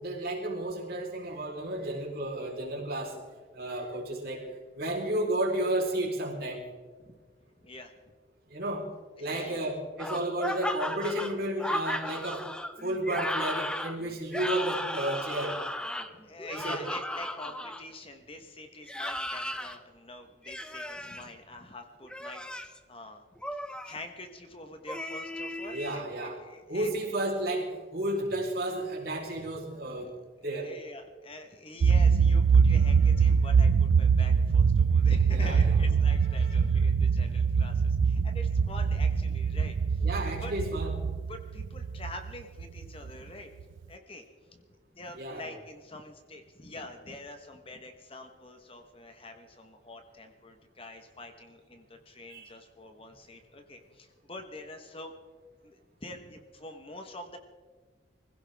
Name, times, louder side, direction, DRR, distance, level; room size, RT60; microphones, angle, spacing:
voice 1, 0.0-3.1 3.5-4.4 4.7-6.6 8.5-8.9 9.2-12.4 12.8-15.6 16.5-16.8 25.7-26.4 26.7-30.1 30.4-30.7 35.3-35.7 36.3-36.6 40.0-41.0 45.2-45.5 52.3-52.5, right 1 dB, 55° right, -2 dB, 4.1 m, -32 dB
voice 2, 9.2-9.7 16.1-23.2 23.5-26.9 29.7-30.2 30.6-40.1 40.4-40.5 41.3-43.5 43.9-44.2 44.5-44.6 44.9-55.1 55.6-57.4, left 2 dB, 30° left, 6 dB, 1.2 m, -46 dB
sound 1, 10.0-17.8 18.8-19.8 20.4-21.2 22.0-22.8 23.4-24.0 24.9-26.0, left 1 dB, 5° left, 0.7 m, -35 dB
sound 2, 31.8-43.1, right 6 dB, 80° right, 0.4 m, -23 dB
24.5 x 16.5 x 3.5 m, 1.5 s
head